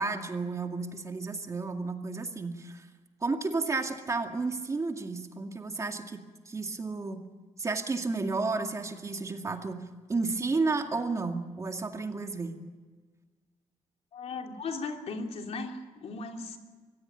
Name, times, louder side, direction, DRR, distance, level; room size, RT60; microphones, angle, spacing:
voice 1, 0.0-2.9 3.2-7.2 7.6-9.8 10.1-12.6, right 3 dB, 25° right, 4 dB, 2.2 m, -32 dB
voice 2, 14.1-16.6, left 3 dB, 60° left, 3 dB, 2.9 m, -37 dB
24.0 x 16.5 x 9.1 m, 1.4 s
cardioid pair, 140°, 12 cm